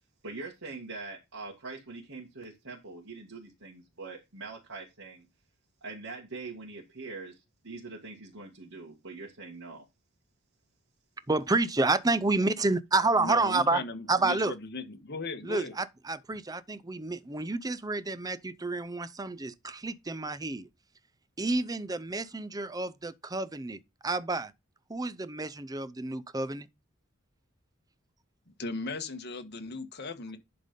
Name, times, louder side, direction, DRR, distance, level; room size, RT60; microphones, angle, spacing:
voice 1, 0.2-5.3 5.8-7.4 7.6-9.9, right 3 dB, 70° right, 2.0 m, -43 dB
voice 2, 11.3-13.8 14.1-14.5 15.4-20.7 21.4-24.5 24.9-26.7, right 3 dB, 20° right, 0.6 m, -29 dB
voice 3, 13.2-15.7 28.5-30.4, left 3 dB, 55° left, 1.5 m, -37 dB
11.0 x 3.9 x 5.2 m
head